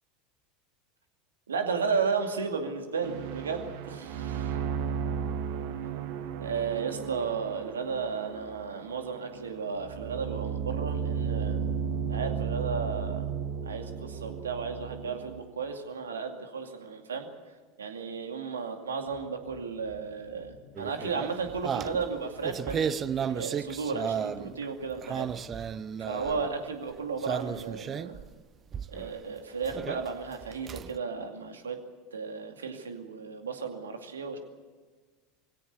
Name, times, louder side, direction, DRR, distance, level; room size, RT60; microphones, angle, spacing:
voice 1, 1.5-4.5 6.4-11.6 12.1-13.3 13.6-17.3 17.8-23.0 23.3-25.6 26.0-28.2 28.9-31.8 32.1-34.4, right 5 dB, 85° right, 5 dB, 2.4 m, -34 dB
sound 1, 3.0-15.4, right 7 dB, 65° right, 1.8 m, -34 dB
sound 2, 19.1-26.6, left 5 dB, 75° left, 2.2 m, -54 dB
sound 3, 20.7-24.6 24.9-26.5 27.2-28.3 28.7-29.1 29.6-31.0, right 7 dB, 35° right, 0.8 m, -34 dB
23.5 x 17.0 x 8.4 m, 1.4 s
hypercardioid pair, 85°, 0 cm